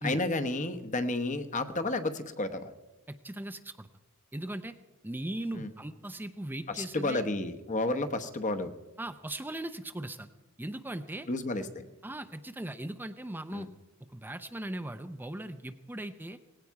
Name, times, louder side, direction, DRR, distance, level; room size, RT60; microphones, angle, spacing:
voice 1, 0.0-2.7 5.5-5.7 6.7-8.7 11.3-11.9 13.5-13.7, left 2 dB, 35° left, 9 dB, 1.0 m, -31 dB
voice 2, 3.2-3.9 4.3-4.7 5.0-7.2 9.0-10.3 10.6-11.3 12.0-13.7 14.1-16.4, right 1 dB, 10° right, 8 dB, 0.5 m, -38 dB
18.5 x 16.5 x 4.7 m, 1.2 s
head